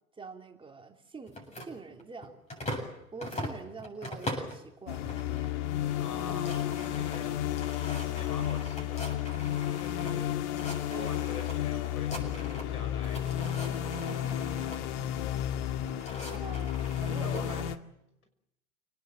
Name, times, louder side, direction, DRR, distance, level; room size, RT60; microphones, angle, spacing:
voice 1, 0.2-2.3 3.1-5.0 6.2-6.4 10.9-11.7 13.7-14.6 14.8-15.0 15.3-15.4 16.3-17.7, right 4 dB, 10° right, 3 dB, 2.9 m, -45 dB
sound 1, 1.3-2.9 3.2-4.6 5.1-5.5 5.8-5.9 6.2-10.1 10.5-11.5 11.8-12.8 13.0-14.8 15.6-17.4, left 1 dB, 15° left, 7.6 m, -41 dB
sound 2, 4.9-17.8, left 11 dB, 50° left, 1.9 m, -32 dB
voice 2, 6.0-7.8 8.1-9.1 9.4-10.4 10.6-13.3 17.2-17.6, left 4 dB, 80° left, 7 dB, 6.1 m, -45 dB
29.0 x 18.5 x 7.8 m, 0.85 s
hypercardioid pair, 105°, 44 cm